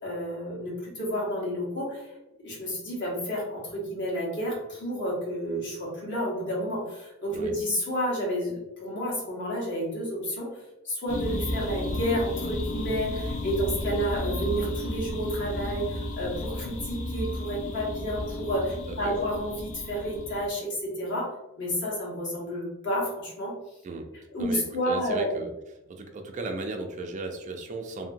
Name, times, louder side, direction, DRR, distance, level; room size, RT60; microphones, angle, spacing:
voice 1, 0.0-2.1 2.4-10.5 10.8-21.3 21.6-23.5 24.3-25.4, equal, 55° left, -4 dB, 1.2 m, -30 dB
sound 1, 11.1-20.5, left 1 dB, 85° left, 0.5 m, -33 dB
voice 2, 18.9-19.2 23.8-24.1 24.4-25.5 25.9-28.1, right 3 dB, 35° right, 4 dB, 0.3 m, -36 dB
2.8 x 2.7 x 2.5 m, 0.97 s
head